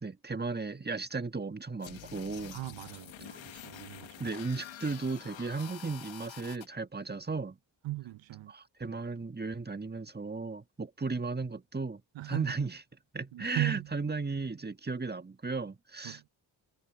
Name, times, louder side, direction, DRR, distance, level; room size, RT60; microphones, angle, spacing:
voice 1, 0.0-2.6 3.3-3.4 4.2-7.6 8.5-12.7 13.1-16.2, right 3 dB, 20° right, 1.6 m, -35 dB
sound 1, 1.8-6.7, left 11 dB, 80° left, 1.7 m, -47 dB
voice 2, 2.5-4.2 7.8-8.5 8.9-9.0 12.1-12.6 13.3-13.9 16.0-16.3, right 17 dB, 75° right, 0.8 m, -37 dB
supercardioid pair, 40°, 46 cm